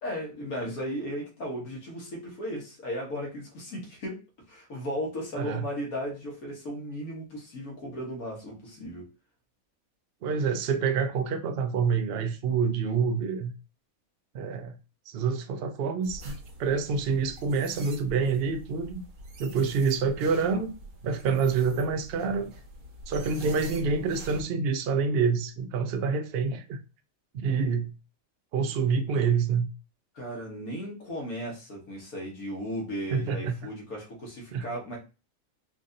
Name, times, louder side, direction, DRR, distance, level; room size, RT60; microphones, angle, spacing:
voice 1, 0.0-4.2 4.5-9.1 30.1-35.0, equal, 90° left, 1.7 m, -36 dB
voice 2, 10.2-13.5 14.3-14.8 15.1-19.0 19.4-20.8 21.0-22.5 23.1-26.8 27.3-27.9 28.5-29.7 33.1-33.5 34.5-34.6, right 5 dB, 60° right, 0.6 m, -27 dB
sound 1, 16.0-24.4, right 1 dB, 85° right, 1.4 m, -45 dB
4.5 x 2.5 x 2.6 m
omnidirectional pair, 1.5 m